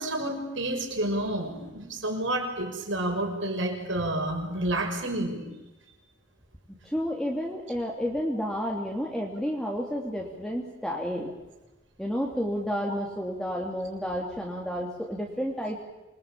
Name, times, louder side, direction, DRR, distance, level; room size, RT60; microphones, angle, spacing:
voice 1, 0.0-5.5, right 1 dB, 75° right, 3 dB, 6.6 m, -29 dB
voice 2, 6.8-11.3 12.0-15.8, equal, ahead, -1 dB, 3.1 m, -31 dB
27.0 x 22.0 x 8.8 m, 1.0 s
head